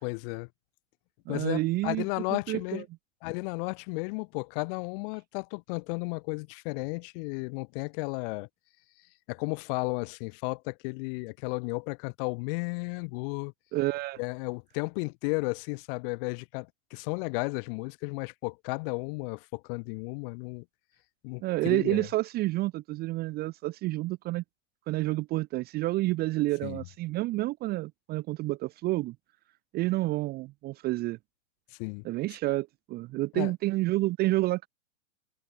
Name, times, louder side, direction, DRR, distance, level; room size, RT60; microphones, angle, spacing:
voice 1, 0.0-0.5 1.3-2.8 3.2-8.5 9.3-13.5 14.2-20.6 21.2-22.1 26.6-26.8 31.8-32.1 33.3-33.5, left 32 dB, 45° left, 2.6 m, -34 dB
voice 2, 1.3-2.0 2.3-2.8 13.7-14.2 21.4-24.4 24.9-29.1 29.7-31.2 32.0-34.7, right 18 dB, 25° right, 0.7 m, -29 dB
hypercardioid pair, 110°, 39 cm